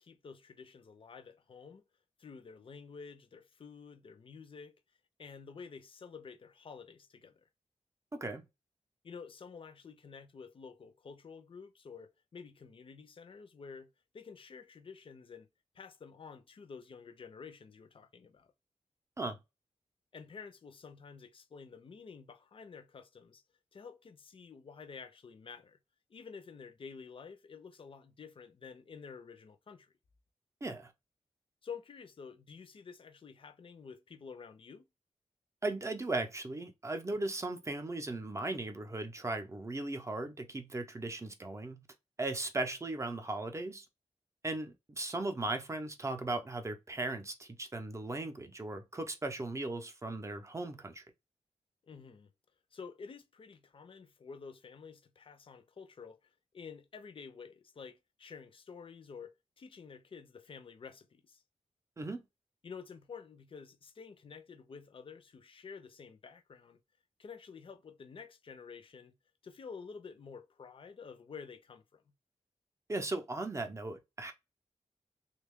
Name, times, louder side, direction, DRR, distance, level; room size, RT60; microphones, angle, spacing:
voice 1, 0.0-1.8 2.2-4.7 5.2-7.5 9.0-15.5 15.7-18.5 20.1-23.4 23.7-25.8 26.1-29.9 31.6-34.9 51.8-52.3 52.7-61.4 62.6-66.8 67.2-69.1 69.4-72.0, left 5 dB, 45° left, 0.5 m, -50 dB
voice 2, 8.1-8.4 19.2-19.4 30.6-30.9 35.6-41.9 42.2-43.9 44.4-51.0 62.0-62.2 72.9-74.3, right 2 dB, 25° right, 0.6 m, -37 dB
3.1 x 2.3 x 3.5 m
wide cardioid pair, 140°, 12 cm